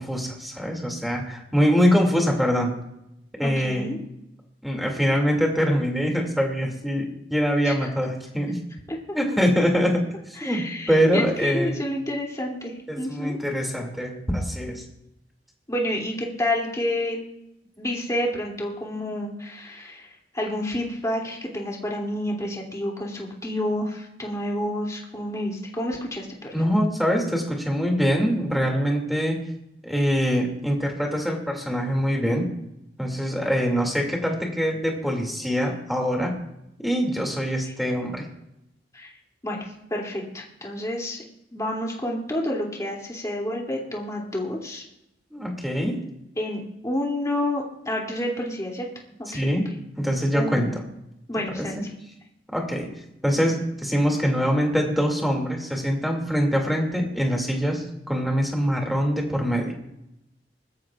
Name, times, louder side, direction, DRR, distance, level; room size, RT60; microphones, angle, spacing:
voice 1, 0.0-2.7 3.4-3.9 4.6-8.6 9.1-10.0 10.3-11.8 12.9-14.8 26.5-29.4 29.8-32.5 33.0-36.3 36.8-38.2 45.3-46.0 49.3-49.6 50.0-50.8 51.6-51.8 52.5-52.9 53.2-59.7, equal, ahead, 1 dB, 2.5 m, -24 dB
voice 2, 3.4-4.0 7.6-7.8 8.9-9.0 10.4-13.4 15.7-17.2 17.8-20.1 20.3-26.5 37.6-37.7 38.9-39.1 39.4-41.2 41.5-44.8 46.4-48.9 49.2-49.4 50.3-50.8 51.3-51.8, left 1 dB, 20° left, -2 dB, 2.8 m, -29 dB
21.0 x 13.0 x 2.5 m, 0.84 s
head